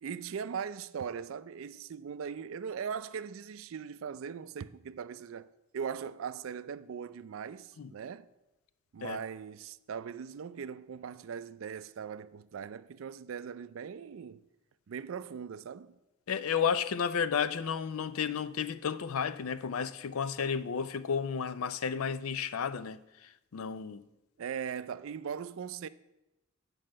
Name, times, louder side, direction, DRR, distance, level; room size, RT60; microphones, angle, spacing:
voice 1, 0.0-8.3 8.9-14.4 14.9-16.0 24.4-25.9, right 7 dB, 70° right, 0.4 m, -40 dB
voice 2, 16.3-24.1, left 7 dB, 85° left, 0.5 m, -32 dB
9.4 x 4.9 x 7.5 m
head